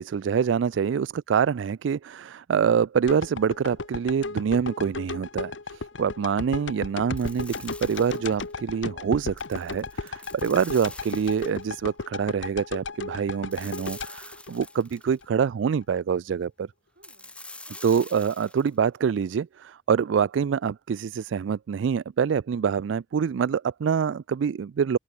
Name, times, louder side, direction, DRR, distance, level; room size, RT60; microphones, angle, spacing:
voice 1, 0.0-5.5 6.0-16.7 17.8-25.0, right 7 dB, 75° right, 0.3 m, -25 dB
voice 2, 0.6-1.2 5.7-6.2 16.8-18.0, right 2 dB, 60° right, 5.8 m, -61 dB
sound 1, 3.1-15.3 15.7-15.8, left 3 dB, 80° left, 1.2 m, -35 dB
sound 2, 7.2-8.5 9.2-11.8 13.5-15.2 17.0-18.7, left 2 dB, 5° left, 3.6 m, -45 dB
head